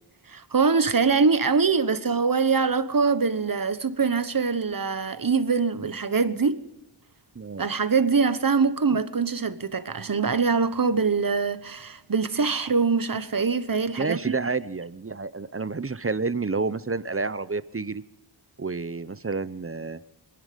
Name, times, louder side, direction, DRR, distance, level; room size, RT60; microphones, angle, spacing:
voice 1, 0.3-6.6 7.6-14.4, right 5 dB, 45° right, 1.2 m, -23 dB
voice 2, 7.3-7.7 14.0-18.0 18.6-20.0, right 4 dB, 30° right, 0.7 m, -29 dB
27.0 x 10.5 x 5.2 m
wide cardioid pair, 55°, 48 cm